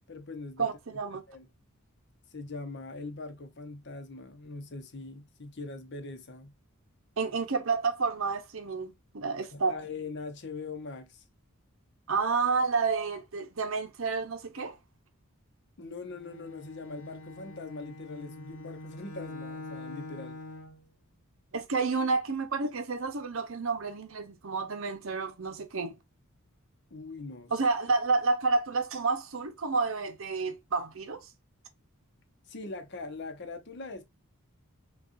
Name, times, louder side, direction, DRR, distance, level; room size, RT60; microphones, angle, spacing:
voice 1, 0.1-0.7 1.3-1.5 2.3-6.5 9.5-11.2 15.8-20.4 26.9-27.5 32.5-34.0, left 3 dB, 50° left, 0.8 m, -41 dB
voice 2, 0.6-1.2 7.2-9.8 12.1-14.8 21.5-26.0 27.5-31.3, right 4 dB, 65° right, 0.7 m, -30 dB
Bowed string instrument, 16.1-20.8, left 2 dB, 80° left, 0.9 m, -44 dB
6.2 x 2.4 x 2.5 m
head